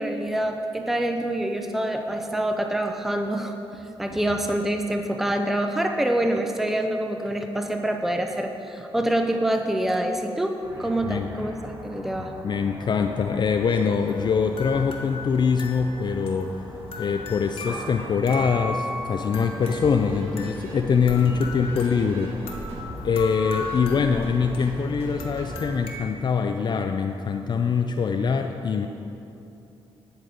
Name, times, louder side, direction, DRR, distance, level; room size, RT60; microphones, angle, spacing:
voice 1, 0.0-12.3, right 1 dB, 5° right, 4 dB, 0.6 m, -26 dB
sound 1, 10.6-24.5, equal, 35° right, 1.7 m, -42 dB
voice 2, 12.4-16.6 17.0-22.4 23.0-28.9, left 6 dB, 50° left, 5 dB, 0.4 m, -23 dB
sound 2, 13.7-26.0, left 3 dB, 65° left, 1.1 m, -38 dB
sound 3, 19.6-25.8, right 1 dB, 80° right, 2.0 m, -39 dB
10.5 x 4.0 x 6.5 m, 2.8 s
cardioid pair, 65°, 10 cm